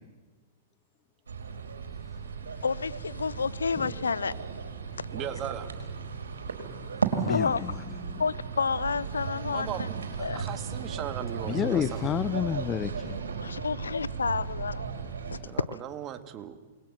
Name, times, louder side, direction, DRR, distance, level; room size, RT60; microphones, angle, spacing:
sound 1, 1.3-15.4, right 5 dB, 80° right, 4.7 m, -35 dB
voice 1, 2.6-4.4 7.3-7.6 8.2-9.9 10.2-10.4 13.4-14.9 15.3-15.4, left 5 dB, 85° left, 20 dB, 0.7 m, -30 dB
voice 2, 5.1-5.7 9.5-12.1 15.5-16.6, right 10 dB, 30° right, 9 dB, 2.2 m, -38 dB
voice 3, 7.2-7.8 8.1-8.2 11.4-13.2, left 9 dB, 25° left, 14 dB, 0.9 m, -30 dB
28.5 x 21.5 x 7.7 m, 1.3 s
hypercardioid pair, 110°, 0 cm